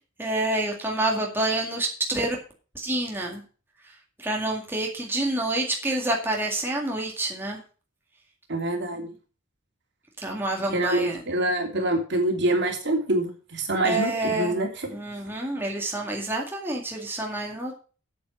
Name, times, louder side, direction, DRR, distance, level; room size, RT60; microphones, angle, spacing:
voice 1, 0.2-2.4 2.8-3.4 4.2-7.6 9.0-9.1 10.2-11.2 13.8-14.6 14.9-17.8, right 2 dB, 10° right, -1 dB, 2.1 m, -28 dB
voice 2, 8.5-9.1 10.7-14.9, right 1 dB, 60° right, 2 dB, 3.0 m, -25 dB
8.6 x 8.4 x 6.5 m, 0.38 s
head